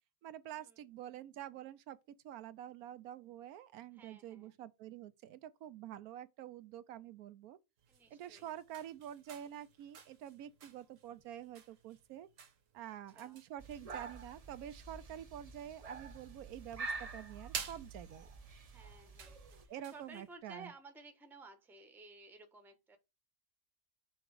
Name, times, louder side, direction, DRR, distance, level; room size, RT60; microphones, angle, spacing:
voice 1, 0.2-2.0 2.2-7.6 8.1-12.3 12.7-18.3 19.7-20.7, right 11 dB, 85° right, 1.1 m, -48 dB
voice 2, 3.9-4.5 7.9-8.5 12.8-13.4 18.7-19.4 19.7-23.0, right 3 dB, ahead, 0.7 m, -56 dB
sound 1, 7.8-20.4, right 7 dB, 60° right, 1.3 m, -53 dB
sound 2, 13.6-19.7, right 4 dB, 40° right, 0.6 m, -48 dB
5.9 x 3.6 x 4.7 m
omnidirectional pair, 1.5 m